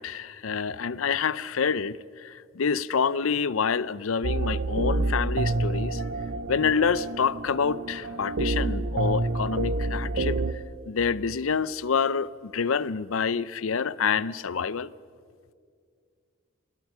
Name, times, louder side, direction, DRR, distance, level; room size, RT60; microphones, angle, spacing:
voice 1, 0.0-6.1 6.5-10.4 10.9-14.9, left 6 dB, 80° left, 0.6 m, -27 dB
sound 1, 4.2-10.5, right 2 dB, 60° right, 0.9 m, -28 dB
26.5 x 20.5 x 6.1 m
head